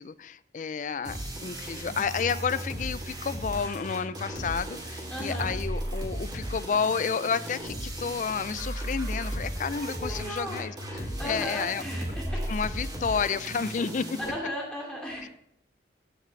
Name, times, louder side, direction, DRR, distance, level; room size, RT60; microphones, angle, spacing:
voice 1, 0.0-11.8 12.5-14.2 15.2-15.3, left 6 dB, 45° left, 16 dB, 0.4 m, -31 dB
sound 1, 1.0-14.3, right 1 dB, 25° right, 2.7 m, -35 dB
voice 2, 5.1-5.6 9.5-10.6 11.2-12.4 14.3-15.3, equal, 5° left, -3 dB, 2.5 m, -36 dB
14.5 x 6.6 x 3.2 m, 0.76 s
head